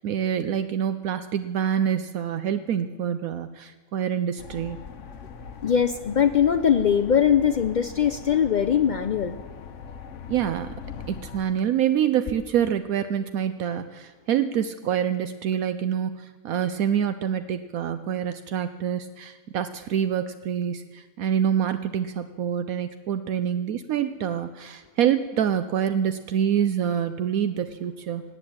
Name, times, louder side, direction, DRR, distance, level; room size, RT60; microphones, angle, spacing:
voice 1, 0.0-4.8 10.3-10.7 11.1-28.2, right 9 dB, 75° right, 10 dB, 1.1 m, -26 dB
sound 1, 4.4-11.4, left 6 dB, 60° left, 1.1 m, -41 dB
voice 2, 5.6-9.4, left 8 dB, 85° left, 9 dB, 0.4 m, -21 dB
18.0 x 8.4 x 8.7 m, 1.4 s
omnidirectional pair, 1.5 m